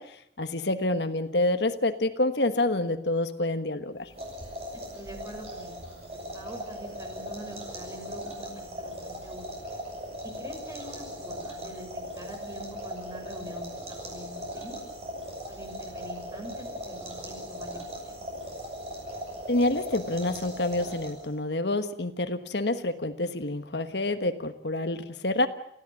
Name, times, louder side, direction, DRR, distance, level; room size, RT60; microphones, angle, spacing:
voice 1, 0.0-4.1 19.5-25.5, left 2 dB, 65° left, 9 dB, 1.4 m, -28 dB
sound 1, 4.0-21.4, equal, 35° right, 7.4 m, -39 dB
voice 2, 4.7-9.6 10.2-14.8 15.5-18.1, equal, 20° right, 3 dB, 6.0 m, -45 dB
29.5 x 15.5 x 8.5 m, 0.74 s
head